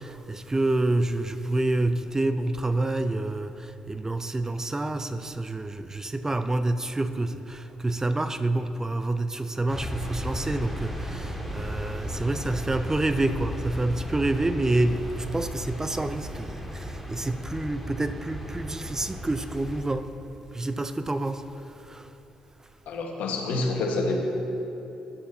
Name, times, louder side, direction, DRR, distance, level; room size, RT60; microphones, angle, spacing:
voice 1, 0.0-20.1 20.5-22.1, right 2 dB, 20° right, 10 dB, 0.6 m, -28 dB
sound 1, 9.7-19.8, equal, 5° right, 2.0 m, -35 dB
voice 2, 22.9-24.2, left 2 dB, 70° left, 1 dB, 1.4 m, -27 dB
15.0 x 11.5 x 2.8 m, 3.0 s
hypercardioid pair, 50°, 3 cm